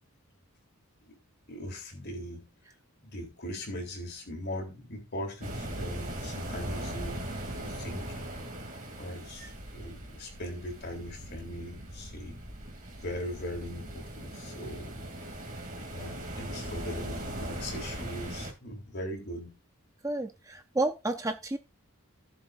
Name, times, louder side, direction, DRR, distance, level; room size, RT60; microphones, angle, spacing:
voice 1, 1.5-2.5 3.0-8.3 9.0-12.4 13.0-15.0 15.9-19.6, equal, 50° left, 3.4 m, -40 dB
sound 1, 5.4-18.5, right 1 dB, 35° right, 2.9 m, -39 dB
voice 2, 20.0-21.6, right 2 dB, 15° right, 0.6 m, -31 dB
16.0 x 7.2 x 2.6 m
head